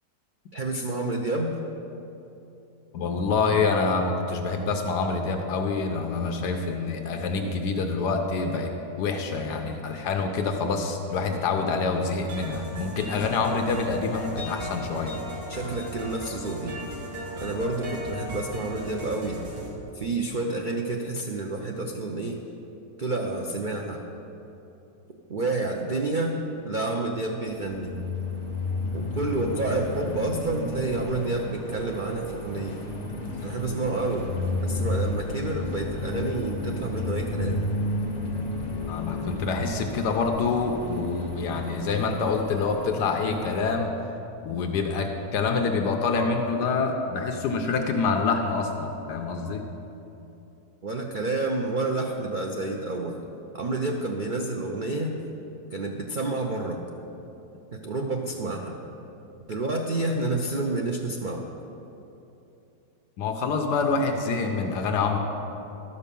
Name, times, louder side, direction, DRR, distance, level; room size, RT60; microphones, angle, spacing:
voice 1, 0.5-1.6 15.5-16.7 17.4-19.4 19.9-22.4 23.0-24.0 25.3-26.4 26.6-28.0 28.9-32.8 33.4-34.3 34.6-37.6 50.8-53.2 53.5-55.2 55.7-56.8 57.7-58.8 59.5-61.4, right 2 dB, 90° right, 1 dB, 0.4 m, -29 dB
voice 2, 2.9-15.2 38.9-43.9 44.4-49.6 63.2-65.2, left 4 dB, 80° left, 4 dB, 1.3 m, -26 dB
sound 1, 12.3-19.7, equal, 70° right, 2.5 m, -37 dB
sound 2, 27.4-43.6, left 2 dB, 25° left, 1.2 m, -32 dB
12.5 x 5.5 x 6.9 m, 2.9 s
omnidirectional pair, 1.8 m